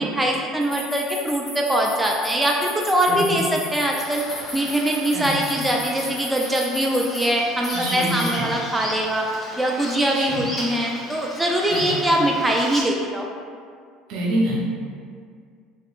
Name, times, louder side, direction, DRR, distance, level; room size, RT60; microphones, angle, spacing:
voice 1, 0.0-4.2 4.5-9.3 9.6-13.3, right 1 dB, 10° right, -1 dB, 0.3 m, -22 dB
sound 1, 0.6-7.2 7.6-8.3, left 2 dB, 55° left, 0.9 m, -34 dB
voice 2, 3.1-3.4 5.1-5.7 7.7-8.5 10.1-10.5 11.7-12.2 14.1-14.7, equal, 65° right, -2 dB, 0.6 m, -27 dB
Bird vocalization bird call bird song, 4.0-12.8, equal, 15° left, 1.0 m, -35 dB
3.0 x 2.9 x 2.4 m, 2.1 s
hypercardioid pair, 70°, 0 cm